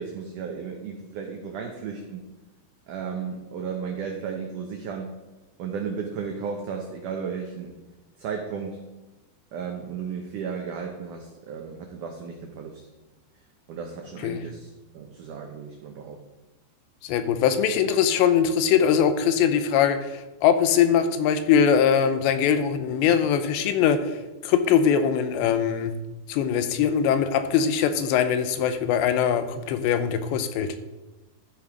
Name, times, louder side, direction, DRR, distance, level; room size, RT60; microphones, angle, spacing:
voice 1, 0.0-2.3 2.9-5.1 5.6-7.8 8.2-8.8 9.5-12.8 13.7-16.2, right 6 dB, 85° right, 2 dB, 1.8 m, -34 dB
voice 2, 17.0-24.2 24.4-25.9 26.3-30.7, left 8 dB, 90° left, 10 dB, 3.0 m, -22 dB
12.5 x 5.8 x 5.0 m, 1.1 s
omnidirectional pair, 4.9 m